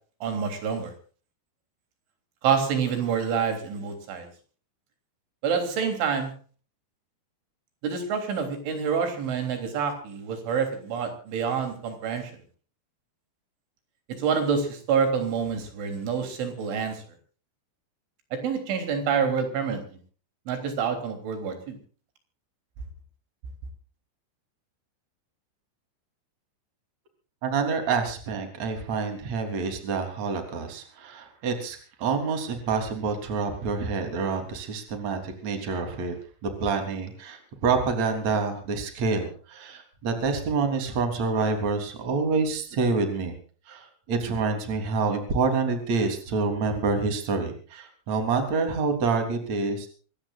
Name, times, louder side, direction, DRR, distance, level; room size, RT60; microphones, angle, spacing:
voice 1, 0.2-0.9 2.4-4.3 5.4-6.3 7.8-12.3 14.2-17.0 18.4-20.0 20.5-21.8, right 6 dB, 80° right, 6 dB, 5.8 m, -27 dB
voice 2, 27.4-36.1 36.4-43.3 43.7-49.9, right 4 dB, 40° right, 6 dB, 4.2 m, -27 dB
25.0 x 18.0 x 2.5 m, 0.41 s
omnidirectional pair, 5.4 m